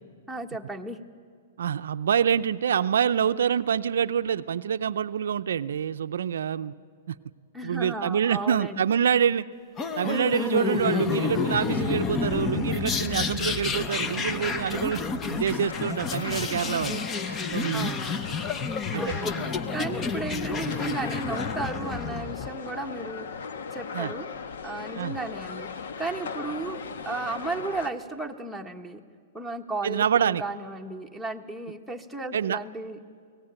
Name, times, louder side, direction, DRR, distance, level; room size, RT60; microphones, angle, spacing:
voice 1, 0.3-1.0 7.5-8.8 17.4-18.3 18.9-19.3 19.7-23.3 23.7-24.3 24.6-25.7 26.0-29.0 29.3-33.0, right 2 dB, ahead, 0 dB, 1.4 m, -34 dB
voice 2, 1.6-6.7 7.1-7.2 7.6-9.4 10.0-15.0 15.3-18.0 18.9-19.5 23.9-24.1 25.0-25.2 29.8-30.4 32.3-32.6, right 8 dB, 75° right, 11 dB, 0.5 m, -26 dB
sound 1, 9.8-22.5, left 4 dB, 25° left, 1.0 m, -30 dB
sound 2, 15.6-27.9, left 5 dB, 70° left, 1.3 m, -38 dB
24.0 x 17.5 x 8.9 m, 2.1 s
hypercardioid pair, 120°, 0 cm